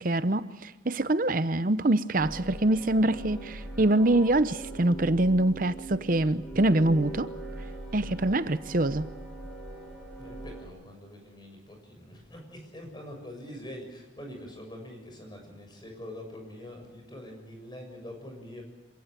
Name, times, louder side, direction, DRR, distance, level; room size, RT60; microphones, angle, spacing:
voice 1, 0.0-7.3 7.9-9.1, right 1 dB, 50° right, 0.9 m, -25 dB
sound 1, 2.2-10.7, right 2 dB, ahead, 5.8 m, -41 dB
voice 2, 10.2-18.6, left 1 dB, 25° left, 6.9 m, -44 dB
26.5 x 17.0 x 9.2 m
head